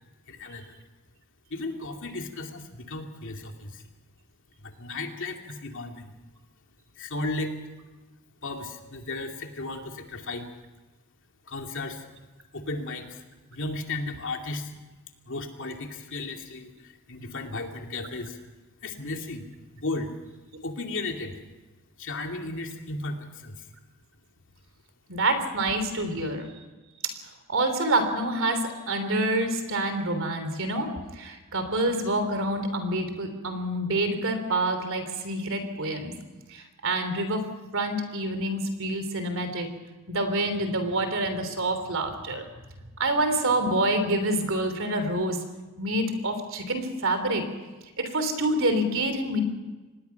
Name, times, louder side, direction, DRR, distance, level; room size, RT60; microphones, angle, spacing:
voice 1, 0.3-0.8 1.5-3.8 4.6-6.1 7.0-7.5 8.4-10.5 11.4-12.0 12.5-13.2 13.5-14.7 15.3-18.4 18.8-19.5 19.7-20.1 20.6-21.4 22.0-23.7, left 2 dB, 60° left, 3 dB, 2.6 m, -35 dB
voice 2, 25.1-26.5 27.5-36.1 36.5-37.4 37.7-39.7 40.1-42.5 43.0-45.4 45.8-47.4 48.0-49.4, right 1 dB, 65° right, 8 dB, 3.3 m, -27 dB
25.5 x 19.5 x 5.8 m, 1.2 s
head